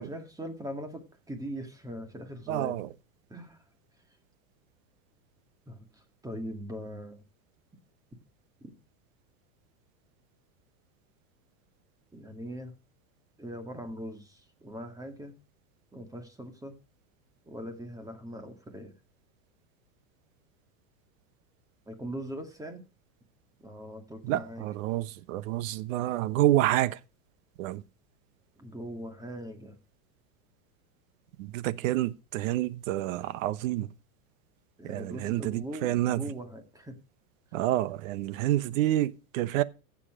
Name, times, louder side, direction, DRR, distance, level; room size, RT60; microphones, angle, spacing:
voice 1, 0.0-2.8 3.3-3.6 5.7-5.8 6.2-7.2 8.6-8.7 12.1-12.7 13.4-15.3 15.9-16.7 17.5-18.9 21.9-22.8 23.6-24.6 28.6-29.8 34.8-36.9, equal, 10° right, 2.0 m, -40 dB
voice 2, 2.5-2.9 24.2-27.0 27.6-27.8 31.4-33.9 34.8-36.3 37.5-39.6, right 14 dB, 65° right, 0.9 m, -28 dB
15.0 x 7.4 x 4.9 m
supercardioid pair, 135°, 43 cm